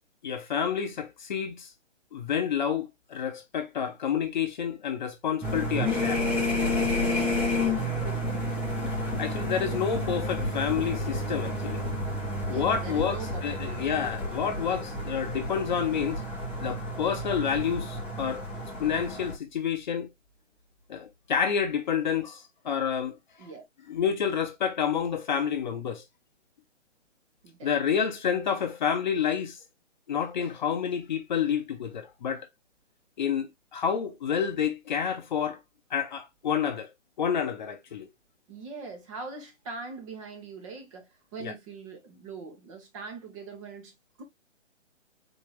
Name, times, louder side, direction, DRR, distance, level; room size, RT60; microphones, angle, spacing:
voice 1, 0.2-1.7 2.1-6.2 9.2-11.8 12.5-16.2 16.6-18.4 18.8-20.1 20.9-23.1 23.9-26.0 27.6-29.6 30.1-32.5 33.2-35.6 35.9-36.9 37.2-38.1 41.4-41.5, left 7 dB, 35° left, 0.8 m, -29 dB
sound 1, 5.4-19.3, left 1 dB, 5° right, 1.0 m, -30 dB
voice 2, 6.8-8.3 9.3-9.5 12.4-14.0 23.4-23.6 27.4-27.7 38.5-44.2, right 4 dB, 25° right, 1.3 m, -43 dB
4.4 x 3.3 x 3.1 m
hypercardioid pair, 150°, 38 cm